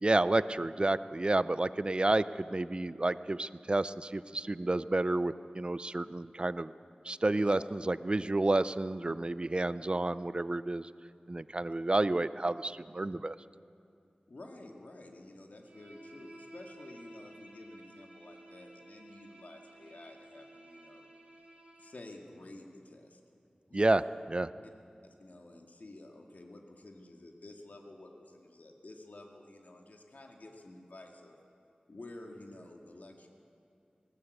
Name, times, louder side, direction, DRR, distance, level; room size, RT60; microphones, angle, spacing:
voice 1, 0.0-6.7 7.0-10.9 11.3-13.4 23.7-24.0 24.3-24.5, right 2 dB, 35° right, 15 dB, 0.5 m, -30 dB
voice 2, 7.3-7.6 14.3-21.1 21.8-23.2 23.7-24.1 25.0-31.4 31.9-33.3, left 2 dB, 70° left, 2 dB, 2.1 m, -51 dB
Bowed string instrument, 15.6-22.0, right 1 dB, 55° right, 6.8 m, -54 dB
20.0 x 18.0 x 8.1 m, 2.5 s
wide cardioid pair, 70°, 3 cm